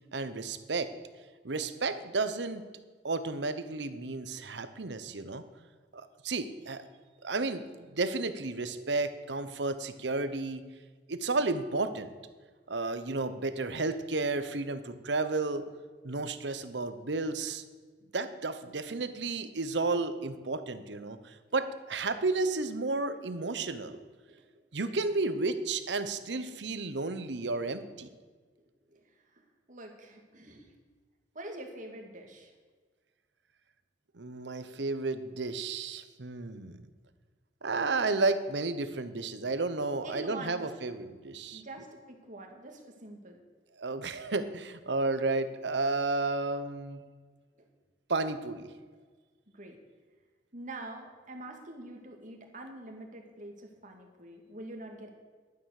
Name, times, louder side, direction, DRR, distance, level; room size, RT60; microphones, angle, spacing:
voice 1, 0.1-0.9 1.4-2.7 3.0-5.4 5.9-6.9 7.2-10.6 11.1-12.1 12.7-15.6 16.0-17.6 18.1-24.0 24.7-28.1 34.1-36.9 37.6-41.6 43.8-47.0 48.1-48.7, right 3 dB, 80° right, 11 dB, 1.0 m, -32 dB
voice 2, 29.3-30.7 31.3-32.5 40.0-40.7 41.5-43.4 47.6-47.7 49.5-49.8 50.5-55.1, right 2 dB, 45° right, 3 dB, 2.2 m, -45 dB
12.0 x 9.5 x 6.6 m, 1.4 s
head